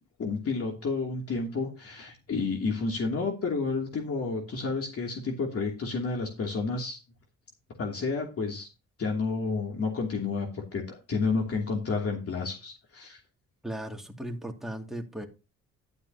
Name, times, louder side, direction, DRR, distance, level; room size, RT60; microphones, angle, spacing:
voice 1, 0.2-7.0 7.8-8.7 9.0-13.2, left 4 dB, 50° left, 2.8 m, -30 dB
voice 2, 13.6-15.3, right 1 dB, ahead, 2.4 m, -37 dB
12.0 x 9.2 x 2.8 m
cardioid pair, 90°, 30 cm